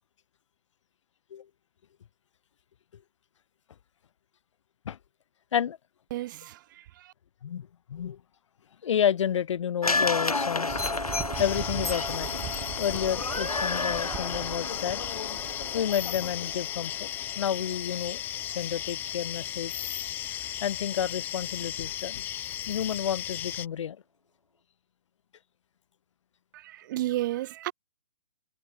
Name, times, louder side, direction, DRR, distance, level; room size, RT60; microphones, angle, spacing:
voice 1, 6.1-7.1 26.5-27.7, right 15 dB, 35° right, 0.6 m, -33 dB
voice 2, 7.4-8.2 8.8-10.8 11.4-12.4 12.8-17.1 17.4-19.7 20.3-22.2 22.7-24.0, left 9 dB, 55° left, 2.6 m, -30 dB
sound 1, 9.8-18.1 18.4-18.5, left 3 dB, 90° left, 3.4 m, -32 dB
sound 2, 10.7-16.6, right 13 dB, 20° right, 1.3 m, -41 dB
sound 3, 11.3-23.7, left 12 dB, 10° left, 0.4 m, -35 dB
figure-of-eight pair, 130°, 18 cm